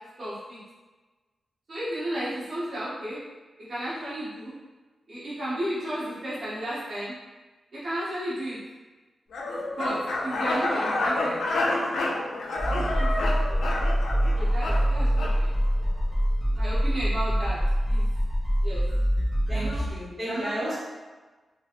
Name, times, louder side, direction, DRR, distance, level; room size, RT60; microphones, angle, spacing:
voice 1, 0.2-0.6 1.7-3.2 3.7-4.5 5.1-7.1 7.7-8.6 9.7-10.0 10.2-11.4 13.0-13.8 14.3-15.6 16.5-17.6 17.9-18.0 18.6-18.8 19.5-19.8 20.2-20.6, equal, 45° right, -10 dB, 1.0 m, -33 dB
sound 1, 9.3-15.4, left 2 dB, 85° left, 0.5 m, -29 dB
sound 2, 12.6-19.9, equal, 5° left, 0.4 m, -25 dB
voice 2, 19.5-20.8, right 1 dB, 15° right, -10 dB, 1.0 m, -33 dB
3.1 x 2.8 x 2.4 m, 1.3 s
wide cardioid pair, 175°, 0 cm